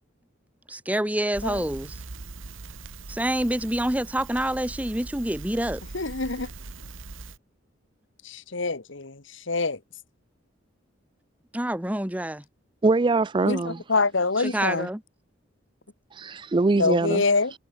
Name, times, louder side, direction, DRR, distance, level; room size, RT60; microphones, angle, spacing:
voice 1, 0.7-1.9 3.1-5.8 11.5-12.4 14.5-15.0, right 1 dB, 5° right, 1.1 m, -27 dB
Crackle, 1.3-7.4, right 3 dB, 85° right, 1.3 m, -41 dB
voice 2, 5.9-6.5 8.2-9.8 13.4-14.9 16.7-17.5, left 3 dB, 70° left, 1.6 m, -26 dB
voice 3, 12.8-13.8 16.1-17.2, right 3 dB, 25° right, 0.4 m, -23 dB
head